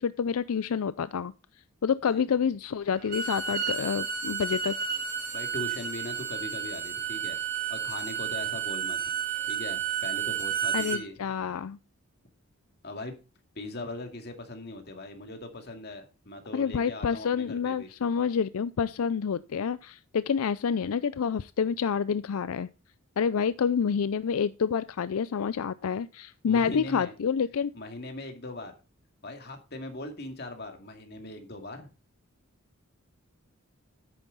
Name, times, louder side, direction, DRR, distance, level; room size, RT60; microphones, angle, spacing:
voice 1, 0.0-1.3 1.8-4.8 10.7-11.8 16.5-22.7 23.2-27.7, left 6 dB, 85° left, 15 dB, 0.4 m, -28 dB
voice 2, 2.0-2.4 5.3-7.4 7.7-9.0 9.5-11.3 12.8-13.2 13.6-17.9 26.5-27.1 27.7-28.7 29.2-31.9, left 2 dB, 50° left, 4 dB, 2.2 m, -40 dB
Bowed string instrument, 3.0-11.0, right 8 dB, 45° right, 4.9 m, -31 dB
10.0 x 9.0 x 3.9 m, 0.30 s
head